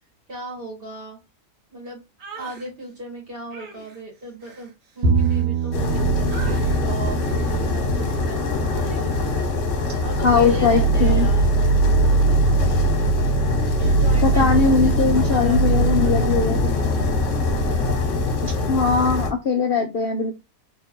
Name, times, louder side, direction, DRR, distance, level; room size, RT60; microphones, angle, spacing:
voice 1, 0.3-1.2 1.7-2.0 2.3-11.6 13.8-16.2, right 1 dB, 40° right, -1 dB, 1.4 m, -37 dB
sound 1, 2.2-2.7 3.5-5.9 6.3-6.8 7.3-7.6 8.0-8.2, right 4 dB, 65° right, 1.5 m, -42 dB
Bowed string instrument, 5.0-11.4, right 6 dB, 90° right, 1.4 m, -28 dB
sound 2, 5.7-19.3, equal, 55° left, 1.1 m, -21 dB
voice 2, 10.2-11.3 14.2-16.8 18.4-20.4, left 5 dB, 70° left, 3 dB, 0.5 m, -20 dB
3.3 x 2.8 x 3.5 m, 0.25 s
omnidirectional pair, 1.7 m